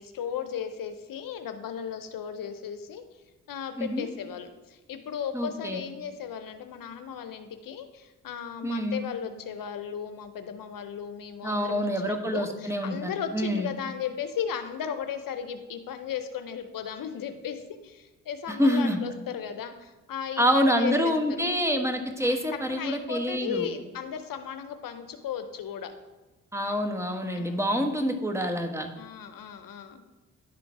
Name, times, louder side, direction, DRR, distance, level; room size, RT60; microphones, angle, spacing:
voice 1, 0.0-3.0 3.5-21.4 22.2-22.4 22.7-25.9 27.3-27.9 29.0-30.0, left 8 dB, 65° left, 8 dB, 0.7 m, -36 dB
voice 2, 5.3-5.8 8.6-9.0 11.4-13.7 18.5-19.0 20.4-23.7 26.5-28.9, equal, 10° right, 5 dB, 1.3 m, -26 dB
10.5 x 3.8 x 4.7 m, 1.1 s
supercardioid pair, 50°, 36 cm